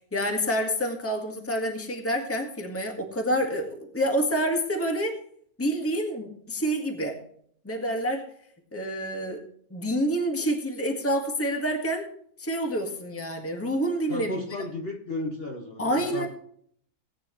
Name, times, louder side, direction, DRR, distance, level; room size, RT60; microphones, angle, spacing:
voice 1, 0.1-5.2 5.6-7.2 7.6-8.2 8.7-9.4 9.7-12.1 12.4-14.4 15.8-16.3, equal, 10° left, 2 dB, 1.8 m, -28 dB
voice 2, 14.1-16.3, left 1 dB, 40° left, 1 dB, 1.9 m, -34 dB
18.0 x 9.2 x 3.2 m, 0.62 s
omnidirectional pair, 1.5 m